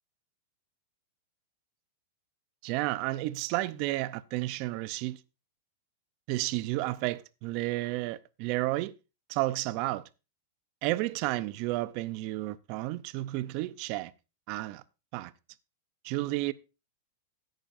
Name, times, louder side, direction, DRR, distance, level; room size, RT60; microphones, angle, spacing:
voice 1, 2.6-5.2 6.3-8.9 9.3-10.0 10.8-14.1 14.5-14.8 15.1-15.3 16.0-16.5, right 18 dB, 45° right, 0.6 m, -32 dB
16.0 x 9.0 x 2.6 m
supercardioid pair, 145°, 0 cm